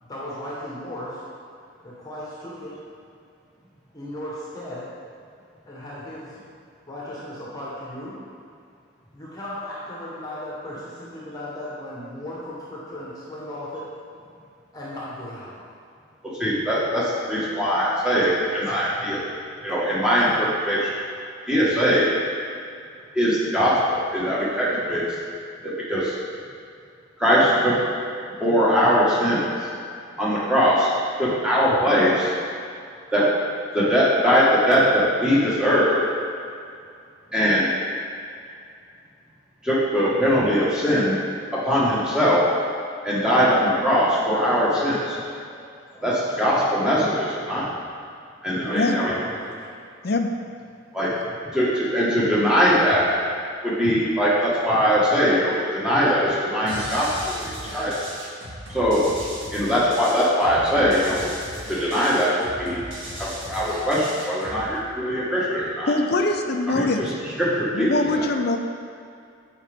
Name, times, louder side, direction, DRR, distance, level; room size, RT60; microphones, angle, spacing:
voice 1, 0.0-1.2 1.8-2.8 3.9-4.8 5.7-6.4 6.9-8.1 9.1-13.9 14.7-15.5 48.6-49.7 51.2-51.4, left 1 dB, 20° left, -7 dB, 1.2 m, -36 dB
voice 2, 16.2-19.2 19.6-20.9 21.4-22.1 23.1-25.2 25.6-26.1 27.2-27.8 28.4-29.5 30.2-30.9 31.2-32.3 33.1-33.3 33.7-36.0 37.3-37.7 39.6-41.2 41.5-42.5 43.0-45.2 45.9-47.7 48.4-49.1 50.9-51.1 51.5-53.0 53.6-57.9 58.7-59.1 59.5-61.2 61.7-62.8 63.2-65.9 66.7-67.1 67.4-68.2, equal, 5° right, -8 dB, 1.4 m, -21 dB
sound 1, 56.7-64.7, right 1 dB, 65° right, 1.7 m, -37 dB
voice 3, 65.9-67.1 67.7-68.6, left 2 dB, 50° left, 4 dB, 0.5 m, -22 dB
8.5 x 5.0 x 3.5 m, 2.4 s
head